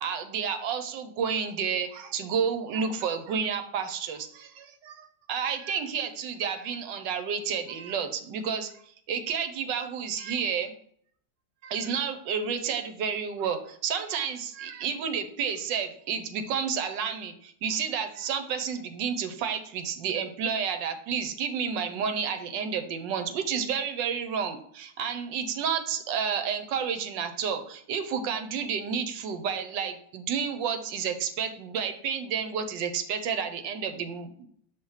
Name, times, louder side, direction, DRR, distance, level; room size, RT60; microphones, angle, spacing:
voice 1, 0.0-8.7 9.1-10.7 11.6-34.5, right 7 dB, 85° right, 8 dB, 1.3 m, -30 dB
5.8 x 3.0 x 5.5 m, 0.63 s
omnidirectional pair, 2.0 m